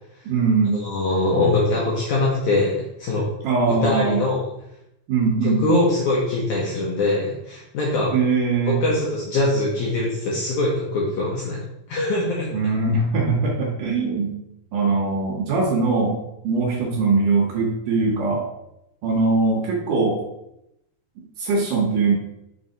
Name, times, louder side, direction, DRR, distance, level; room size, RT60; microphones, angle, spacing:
voice 1, 0.3-0.8 3.4-4.2 5.1-5.6 8.1-8.8 12.5-14.4 14.7-16.2 16.4-18.4 19.0-20.2 21.2-22.2, right 4 dB, 70° right, -1 dB, 2.3 m, -21 dB
voice 2, 0.8-3.3 3.7-4.4 5.6-8.1 8.6-11.6 11.9-12.5, left 2 dB, 70° left, -4 dB, 1.9 m, -22 dB
5.6 x 4.7 x 3.9 m, 0.83 s
omnidirectional pair, 4.5 m